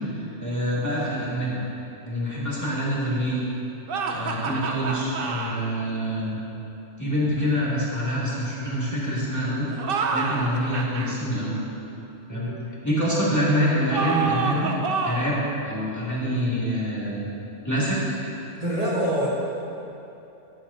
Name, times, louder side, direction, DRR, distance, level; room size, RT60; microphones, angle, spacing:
voice 1, 0.0-1.5 2.0-3.4 4.1-6.4 7.0-9.7 10.1-11.6 12.3-12.5 12.8-14.7 15.0-17.2 17.6-18.0, equal, 15° left, -9 dB, 2.3 m, -26 dB
sound 1, 3.9-5.6 9.7-11.1 13.9-15.4, right 4 dB, 55° right, 0.8 m, -28 dB
voice 2, 12.3-12.6 18.6-19.3, right 1 dB, 35° right, -8 dB, 1.3 m, -26 dB
14.5 x 9.8 x 2.8 m, 2.9 s
omnidirectional pair, 1.2 m